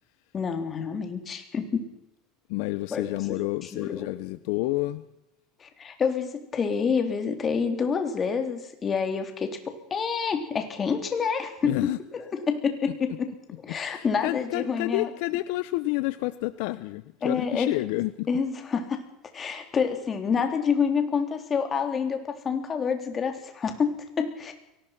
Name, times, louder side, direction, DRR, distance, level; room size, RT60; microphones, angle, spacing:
voice 1, 0.3-1.9 2.9-4.1 5.6-9.6 9.9-11.7 12.1-13.3 13.6-15.1 17.2-17.8 18.3-19.0 19.3-24.5, left 6 dB, 25° left, 6 dB, 3.7 m, -28 dB
voice 2, 2.5-5.0 11.6-12.0 13.7-18.3, left 19 dB, 70° left, 15 dB, 0.8 m, -29 dB
23.0 x 19.0 x 6.0 m, 0.89 s
supercardioid pair, 130°, 0 cm